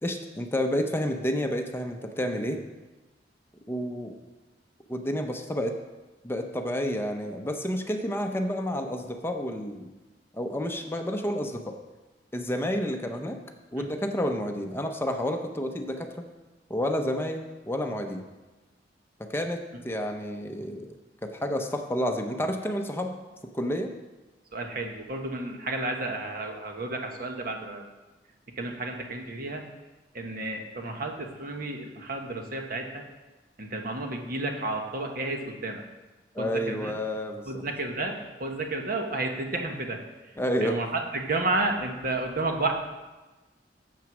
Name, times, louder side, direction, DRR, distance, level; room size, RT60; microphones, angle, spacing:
voice 1, 0.0-2.6 3.7-4.1 4.9-5.8 6.2-9.9 10.3-11.7 12.3-13.4 13.7-16.2 16.7-18.2 19.3-19.6 19.8-20.9 21.2-23.2 23.5-23.9 36.3-37.6 40.4-40.8, equal, 15° left, 4 dB, 0.6 m, -30 dB
voice 2, 24.5-27.8 28.6-29.7 30.1-33.0 33.6-35.8 36.4-36.9 37.5-42.7, right 2 dB, 55° right, 3 dB, 1.3 m, -32 dB
9.1 x 7.5 x 6.1 m, 1.2 s
head